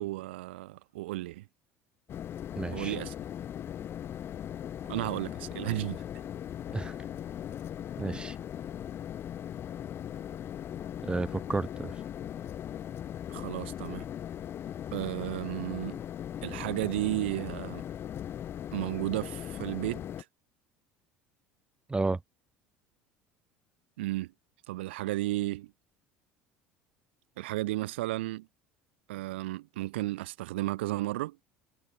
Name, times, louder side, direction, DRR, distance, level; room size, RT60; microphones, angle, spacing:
voice 1, 0.0-1.5 2.7-3.1 4.9-6.0 8.1-8.2 13.3-14.1 14.9-16.0 16.4-17.8 18.7-20.1 24.0-24.3 24.7-25.7 27.4-28.5 29.1-31.4, right 18 dB, 70° right, 1.3 m, -33 dB
sound 1, 2.1-20.2, left 10 dB, 40° left, 0.7 m, -39 dB
voice 2, 2.6-2.9 6.7-7.0 8.0-8.4 11.0-11.9 21.9-22.2, right 3 dB, 15° right, 0.9 m, -32 dB
figure-of-eight pair, 65°, 6 cm